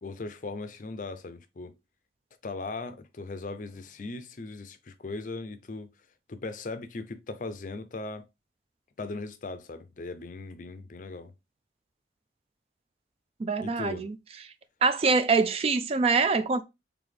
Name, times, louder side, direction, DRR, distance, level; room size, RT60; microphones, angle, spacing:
voice 1, 0.0-1.7 2.4-5.9 6.3-8.3 9.0-11.3 13.6-14.1, left 3 dB, 45° left, 0.5 m, -38 dB
voice 2, 13.4-14.2 14.8-16.6, right 4 dB, 30° right, 0.3 m, -24 dB
4.0 x 3.4 x 3.2 m
head